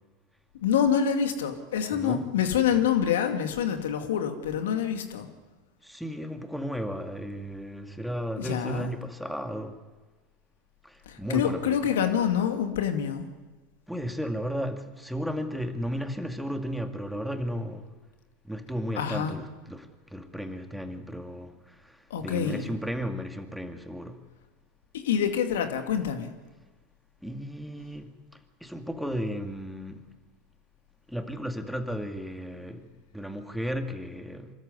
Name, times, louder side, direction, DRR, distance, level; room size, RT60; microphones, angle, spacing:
voice 1, 0.6-5.3 8.4-8.9 11.1-13.2 19.0-19.3 22.1-22.7 24.9-26.3, left 8 dB, 80° left, 2.4 m, -26 dB
voice 2, 1.9-2.3 2.7-2.9 5.8-9.8 10.8-11.9 13.9-17.9 18.4-24.2 27.2-28.2 28.6-30.0 31.1-34.5, equal, ahead, 2.3 m, -34 dB
25.0 x 13.5 x 9.7 m
hypercardioid pair, 95°, 0 cm